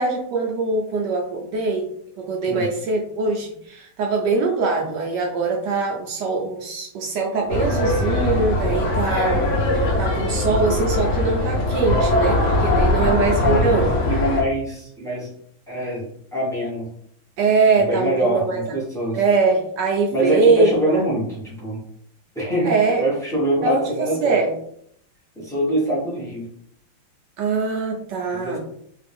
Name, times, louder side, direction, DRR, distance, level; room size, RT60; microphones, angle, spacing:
voice 1, 0.0-1.8 2.2-9.5 9.7-13.9 17.4-18.6 19.1-21.0 22.6-23.0 23.6-23.8 24.2-24.5 27.4-28.6, right 4 dB, 70° right, 1 dB, 1.0 m, -22 dB
sound 1, 7.5-14.4, left 1 dB, 65° left, 0.7 m, -21 dB
voice 2, 12.9-15.3 15.7-16.9 17.9-19.2 20.1-21.8 22.3-24.4 25.3-26.5 28.3-28.6, right 1 dB, 5° left, -7 dB, 0.5 m, -24 dB
3.3 x 2.4 x 3.4 m, 0.67 s
omnidirectional pair, 2.3 m